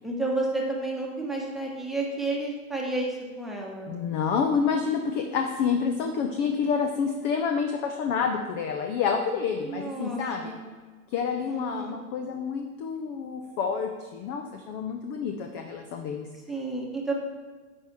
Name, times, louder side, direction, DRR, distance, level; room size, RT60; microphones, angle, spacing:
voice 1, 0.0-3.9 9.6-10.6 11.5-12.0 16.5-17.1, right 2 dB, ahead, -3 dB, 1.2 m, -31 dB
voice 2, 3.9-10.5 11.1-16.3, left 6 dB, 25° left, 4 dB, 0.4 m, -28 dB
9.5 x 4.6 x 3.5 m, 1.4 s
hypercardioid pair, 110°, 43 cm